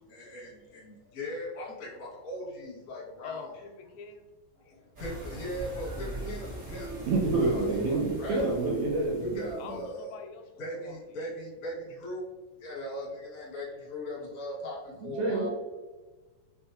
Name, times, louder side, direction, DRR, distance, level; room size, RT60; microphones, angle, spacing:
voice 1, 0.1-3.5 4.5-7.1 7.4-8.4 9.2-10.1 10.6-12.3 12.6-15.5, left 1 dB, 60° left, -6 dB, 0.8 m, -39 dB
voice 2, 3.2-4.2 9.6-10.4 10.7-11.0, left 6 dB, 85° left, 5 dB, 2.3 m, -44 dB
sound 1, 4.9-9.9, right 1 dB, 65° right, 0.8 m, -41 dB
voice 3, 7.1-9.8 15.0-15.5, right 3 dB, 80° right, -2 dB, 1.7 m, -28 dB
5.7 x 2.3 x 2.7 m, 1.2 s
omnidirectional pair, 4.0 m